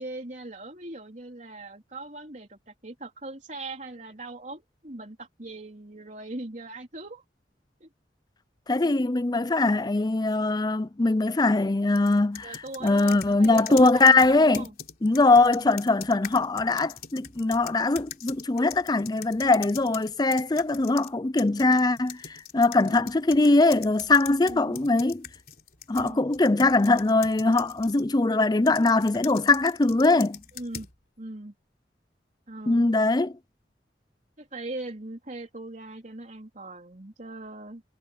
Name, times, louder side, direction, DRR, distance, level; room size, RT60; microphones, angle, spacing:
voice 1, 0.0-7.2 7.8-7.9 12.4-14.7 15.4-15.7 20.8-21.0 22.8-23.1 24.5-24.8 25.9-26.2 30.5-30.9 31.2-31.5 32.5-32.9 34.4-37.8, right 2 dB, 45° right, 3.6 m, -40 dB
voice 2, 8.7-12.5 12.8-14.7 15.0-25.2 25.9-30.4 32.7-33.3, left 2 dB, 25° left, 0.5 m, -22 dB
sound 1, 12.0-21.1 21.4-28.1 28.7-30.9, left 9 dB, 55° left, 3.8 m, -42 dB
head